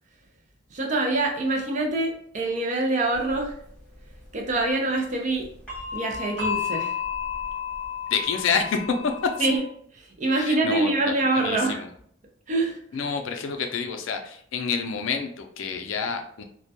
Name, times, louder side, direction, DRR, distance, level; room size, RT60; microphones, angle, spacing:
voice 1, 0.7-3.5 4.3-5.5 5.9-7.0 9.4-9.6 9.9-11.8 12.5-12.8, right 2 dB, 40° right, 2 dB, 0.4 m, -25 dB
sound 1, 3.1-3.3 5.7-9.6, left 7 dB, 5° left, 1.0 m, -32 dB
voice 2, 8.1-9.1 9.4-9.5 10.4-11.9 12.9-16.4, left 5 dB, 75° left, 5 dB, 0.4 m, -28 dB
2.2 x 2.1 x 2.7 m, 0.63 s
head